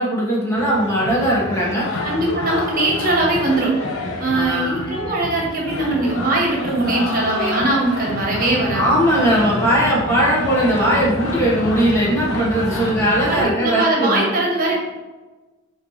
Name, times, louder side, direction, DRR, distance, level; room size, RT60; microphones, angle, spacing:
voice 1, 0.0-2.0 4.3-4.8 7.2-7.6 8.7-14.3, right 1 dB, 15° left, -6 dB, 1.6 m, -19 dB
sound 1, 0.6-13.4, left 2 dB, 85° left, 1.0 m, -28 dB
voice 2, 2.0-3.7 4.2-9.0 13.3-14.8, right 2 dB, 45° right, -2 dB, 1.6 m, -21 dB
7.3 x 4.4 x 3.3 m, 1.2 s
head